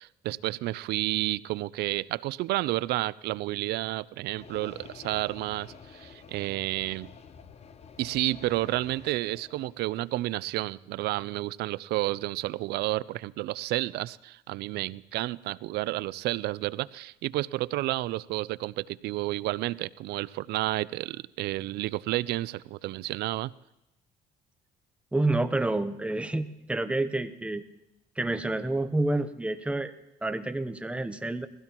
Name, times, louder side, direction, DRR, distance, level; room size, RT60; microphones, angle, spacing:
voice 1, 0.0-7.1 8.0-23.5, right 17 dB, 75° right, 20 dB, 0.4 m, -31 dB
sound 1, 4.4-9.8, left 6 dB, 40° left, 0.7 m, -49 dB
voice 2, 25.1-27.6 28.2-29.9 30.2-31.5, right 2 dB, 5° right, 10 dB, 0.7 m, -28 dB
21.5 x 16.0 x 3.0 m, 0.90 s
cardioid pair, 110°, 17 cm